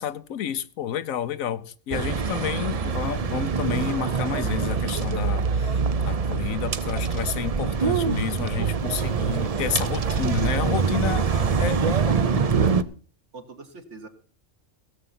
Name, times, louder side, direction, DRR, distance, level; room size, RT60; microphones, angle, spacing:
voice 1, 0.0-11.3 11.6-12.8, left 9 dB, 85° left, 1.2 m, -30 dB
sound 1, 1.9-12.8, right 6 dB, 40° right, 0.5 m, -24 dB
voice 2, 2.6-2.9 11.3-12.4 13.3-14.1, right 4 dB, 60° right, 2.0 m, -42 dB
16.5 x 8.0 x 5.8 m
omnidirectional pair, 1.4 m